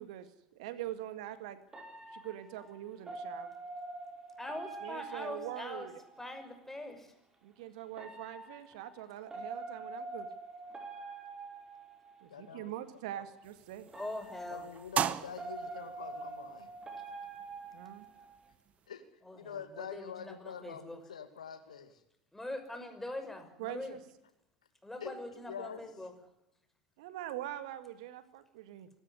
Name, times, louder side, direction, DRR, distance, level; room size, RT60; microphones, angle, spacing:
voice 1, 0.0-1.6 2.1-3.5 4.8-5.9 7.4-10.3 12.2-13.9 17.7-18.1 23.6-24.0 27.0-28.9, right 13 dB, 65° right, 12 dB, 1.9 m, -43 dB
sound 1, 1.7-6.3 7.9-12.5 13.9-18.5, right 3 dB, 20° right, 4.9 m, -46 dB
voice 2, 4.4-5.9 6.2-7.1 13.9-14.7 19.2-21.0 22.3-24.0 24.8-26.1, left 1 dB, 10° left, 6 dB, 5.9 m, -43 dB
voice 3, 12.3-12.8 13.2-13.3 14.5-16.7 18.9-19.0 19.3-22.0 25.0-25.8, left 7 dB, 80° left, 10 dB, 2.3 m, -45 dB
sound 2, 13.4-18.9, right 9 dB, 35° right, 1.2 m, -40 dB
24.5 x 13.5 x 9.6 m, 0.84 s
figure-of-eight pair, 75°, 4 cm